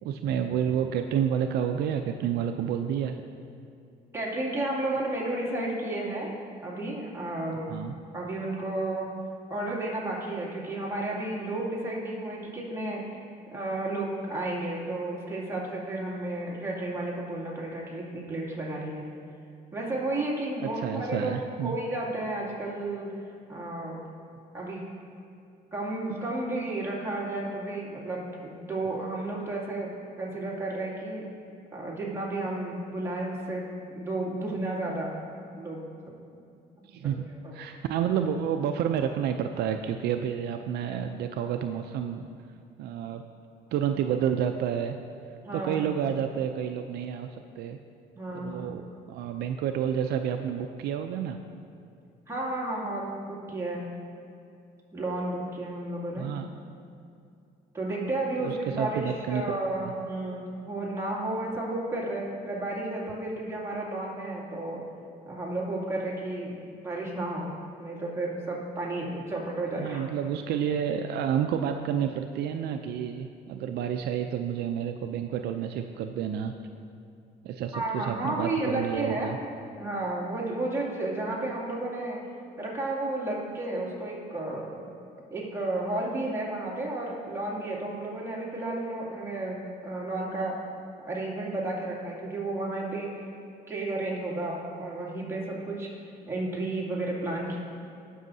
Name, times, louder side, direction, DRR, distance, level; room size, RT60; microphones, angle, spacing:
voice 1, 0.0-3.2 7.7-7.9 20.8-21.8 36.9-37.3 37.5-42.3 42.8-43.2 43.7-45.0 45.5-47.8 48.3-51.4 56.2-56.5 58.4-59.4 59.8-59.9 69.7-76.5 77.4-79.4, right 8 dB, 75° right, 6 dB, 0.5 m, -30 dB
voice 2, 4.1-6.3 6.6-7.7 8.1-9.1 9.5-13.1 13.5-19.1 19.7-21.3 21.6-23.2 23.5-24.0 24.5-24.8 25.7-29.9 30.2-31.3 31.7-35.1 35.6-35.8 37.4-37.5 45.4-45.8 48.2-48.6 52.3-53.9 54.9-56.3 57.7-64.8 65.2-67.5 67.8-70.0 77.7-79.3 79.8-82.2 82.6-84.9 85.3-90.6 91.0-93.1 93.7-97.6, right 2 dB, 15° right, -5 dB, 2.5 m, -32 dB
18.0 x 6.2 x 2.7 m, 2.5 s
cardioid pair, 110°, 17 cm